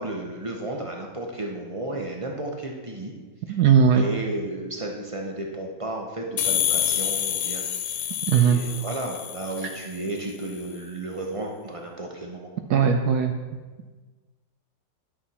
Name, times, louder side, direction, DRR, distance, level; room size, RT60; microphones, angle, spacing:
voice 1, 0.0-3.1 3.5-3.6 3.9-8.0 8.3-12.5, right 2 dB, 40° right, 1 dB, 0.4 m, -33 dB
voice 2, 3.5-4.1 8.3-8.6 9.6-9.7 12.7-13.3, right 7 dB, 70° right, 5 dB, 1.0 m, -19 dB
sound 1, 6.4-10.0, left 10 dB, 90° left, 1.4 m, -27 dB
11.0 x 6.2 x 4.1 m, 1.3 s
omnidirectional pair, 2.0 m